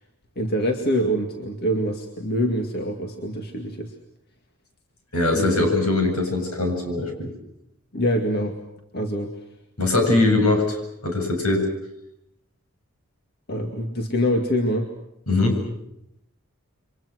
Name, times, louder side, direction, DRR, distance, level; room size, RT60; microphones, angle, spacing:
voice 1, 0.4-4.0 5.3-5.7 7.9-8.6 8.9-9.3 10.0-10.3 13.5-14.9, equal, 45° left, 3 dB, 2.2 m, -25 dB
voice 2, 5.1-7.3 9.8-10.8 11.0-11.7 15.3-15.6, left 2 dB, 80° left, 4 dB, 7.6 m, -21 dB
29.5 x 24.5 x 6.4 m, 0.80 s
head